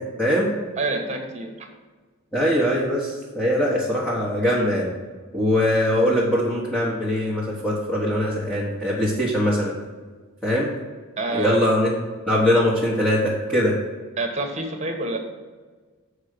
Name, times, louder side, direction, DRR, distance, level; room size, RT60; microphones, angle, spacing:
voice 1, 0.2-0.5 2.3-4.9 5.3-9.7 10.4-10.7 11.3-11.9 12.3-13.8, equal, 5° left, -7 dB, 1.3 m, -21 dB
voice 2, 0.8-1.7 11.2-11.6 14.2-15.2, right 2 dB, 35° right, 4 dB, 1.2 m, -27 dB
7.4 x 4.9 x 6.6 m, 1.4 s
head